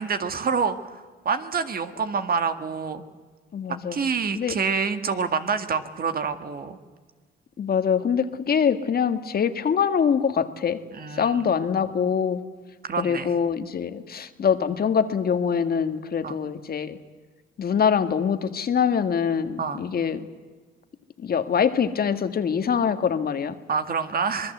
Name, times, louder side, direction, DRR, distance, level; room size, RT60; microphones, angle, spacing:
voice 1, 0.0-3.0 3.9-6.8 10.9-11.5 12.8-13.3 16.2-16.4 19.6-19.8 23.7-24.5, right 5 dB, 50° right, 9 dB, 1.9 m, -27 dB
voice 2, 3.5-4.0 4.3-4.6 7.6-10.8 11.1-12.4 13.0-17.0 17.6-20.2 21.2-23.5, left 7 dB, 50° left, 9 dB, 1.7 m, -24 dB
26.0 x 20.5 x 8.0 m, 1.5 s
cardioid pair, 90°, 20 cm